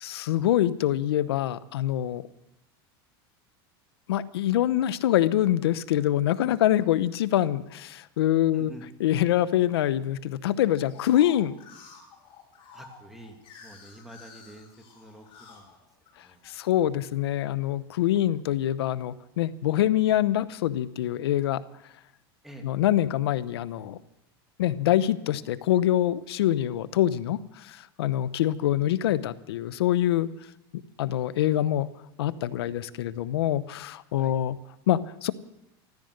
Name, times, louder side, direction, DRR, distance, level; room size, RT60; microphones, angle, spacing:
voice 1, 0.0-2.2 4.1-8.7 9.0-11.5 16.5-21.6 22.6-24.0 24.6-30.3 31.0-31.9 32.2-34.6 34.9-35.3, left 12 dB, 90° left, 17 dB, 0.7 m, -25 dB
voice 2, 8.5-8.8 12.7-15.8 16.2-16.4 22.4-22.7 34.2-34.4, right 1 dB, ahead, 3 dB, 2.4 m, -48 dB
sound 1, 10.8-16.5 17.0-17.7, left 5 dB, 45° left, 6.4 m, -51 dB
14.5 x 13.5 x 6.5 m, 0.88 s
supercardioid pair, 120°, 13 cm